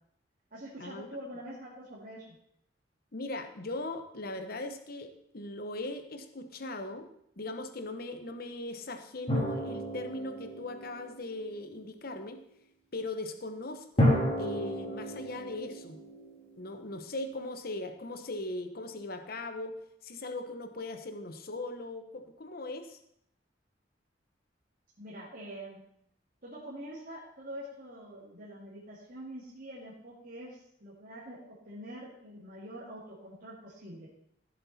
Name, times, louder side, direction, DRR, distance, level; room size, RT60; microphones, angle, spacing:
voice 1, 0.5-2.3 25.0-25.8 26.4-31.4 31.7-34.1, right 1 dB, 55° right, -7 dB, 2.4 m, -45 dB
voice 2, 3.1-7.1 7.4-12.4 12.9-16.0 16.6-23.0, left 2 dB, 55° left, 7 dB, 1.0 m, -39 dB
sound 1, 9.3-11.6 14.0-16.9, equal, 30° left, 2.8 m, -31 dB
15.0 x 7.6 x 4.2 m, 0.72 s
head